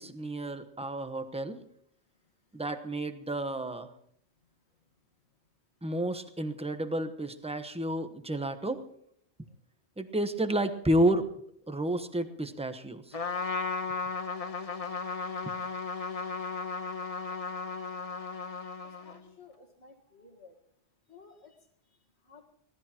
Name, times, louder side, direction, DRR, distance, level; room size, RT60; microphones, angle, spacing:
voice 1, 0.0-1.6 2.5-3.9 5.8-8.8 10.0-11.3 11.7-13.2, right 1 dB, 5° right, 8 dB, 1.0 m, -31 dB
Trumpet, 13.1-19.3, left 4 dB, 35° left, 1.0 m, -35 dB
voice 2, 18.6-20.6 21.1-22.5, left 4 dB, 70° left, 2 dB, 2.0 m, -56 dB
24.5 x 17.5 x 3.0 m, 0.66 s
omnidirectional pair, 1.2 m